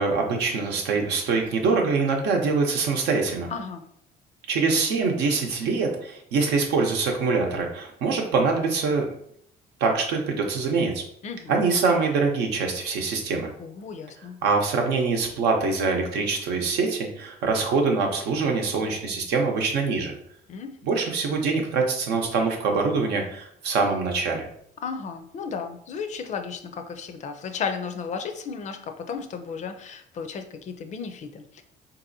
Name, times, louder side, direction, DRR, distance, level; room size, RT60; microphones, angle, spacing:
voice 1, 0.0-3.5 4.5-9.1 9.8-11.0 11.5-13.5 14.4-20.2 20.8-24.4, right 4 dB, 80° right, 2 dB, 0.8 m, -24 dB
voice 2, 3.5-3.9 11.2-11.5 13.6-14.4 20.5-20.7 24.8-31.6, left 6 dB, 45° left, 8 dB, 0.4 m, -34 dB
3.9 x 2.7 x 2.6 m, 0.69 s
cardioid pair, 110°, 17 cm